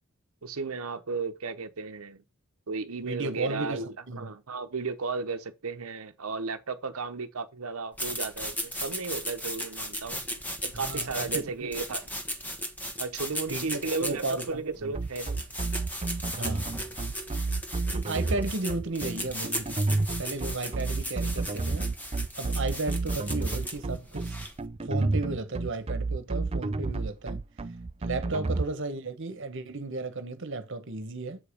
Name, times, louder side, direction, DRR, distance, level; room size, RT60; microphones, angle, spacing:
voice 1, 0.4-2.2 2.7-10.2 10.6-12.1 13.0-15.5, right 4 dB, 80° right, 0.9 m, -34 dB
voice 2, 3.0-4.3 10.8-11.7 13.5-14.9 16.4-16.7 17.9-19.9 20.2-21.9 22.4-24.4 24.8-27.4 28.0-31.4, right 2 dB, 60° right, 1.2 m, -34 dB
sound 1, 7.9-24.7, equal, 10° left, 1.2 m, -37 dB
sound 2, 14.9-28.6, right 3 dB, 30° right, 0.5 m, -30 dB
7.9 x 4.9 x 5.0 m
head